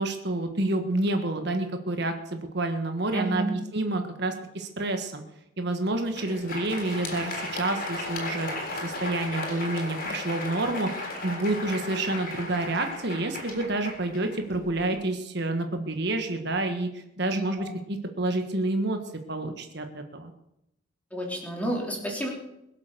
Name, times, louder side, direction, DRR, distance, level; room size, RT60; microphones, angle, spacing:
voice 1, 0.0-5.2 5.6-19.0 19.3-20.3, right 2 dB, 55° right, 5 dB, 1.5 m, -29 dB
voice 2, 3.1-3.6 17.3-17.7 21.1-22.3, right 1 dB, 5° left, -1 dB, 3.4 m, -31 dB
Crowd, 5.9-14.9, left 2 dB, 45° left, 3.7 m, -35 dB
22.0 x 7.8 x 6.8 m, 0.83 s
head